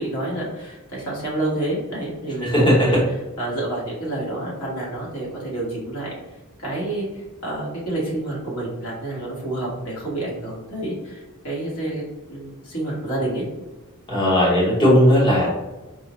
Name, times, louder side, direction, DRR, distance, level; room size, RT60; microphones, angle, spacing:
voice 1, 0.0-3.0 3.4-6.1 6.6-12.0 12.3-13.4, right 1 dB, 85° left, -4 dB, 1.4 m, -28 dB
voice 2, 2.4-2.9 14.1-15.5, equal, 25° left, -5 dB, 0.8 m, -17 dB
4.5 x 2.1 x 3.0 m, 1.1 s
head